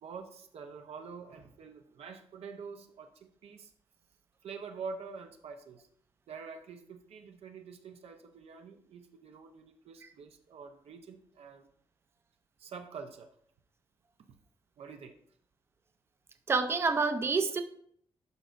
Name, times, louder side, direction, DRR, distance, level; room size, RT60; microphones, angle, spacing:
voice 1, 0.0-3.7 4.4-5.9 6.3-11.7 12.6-13.3 14.8-15.2, right 5 dB, 80° right, 5 dB, 0.7 m, -46 dB
voice 2, 16.5-17.6, right 4 dB, 25° right, 8 dB, 0.4 m, -28 dB
12.0 x 5.1 x 2.5 m, 0.65 s
wide cardioid pair, 160°, 10 cm